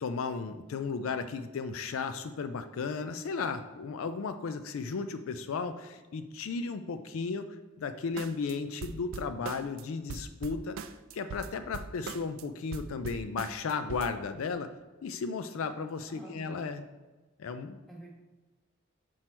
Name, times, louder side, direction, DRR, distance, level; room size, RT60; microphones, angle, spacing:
voice 1, 0.0-10.8 11.1-14.7 15.0-16.8 17.4-17.8, left 5 dB, 75° left, 10 dB, 0.4 m, -35 dB
sound 1, 8.2-8.5 8.8-9.8 10.1-12.4 12.7-14.1, right 5 dB, 70° right, 0.3 m, -41 dB
voice 2, 16.1-16.9 17.9-18.1, right 2 dB, ahead, -3 dB, 1.3 m, -49 dB
6.0 x 4.5 x 4.4 m, 1.2 s
head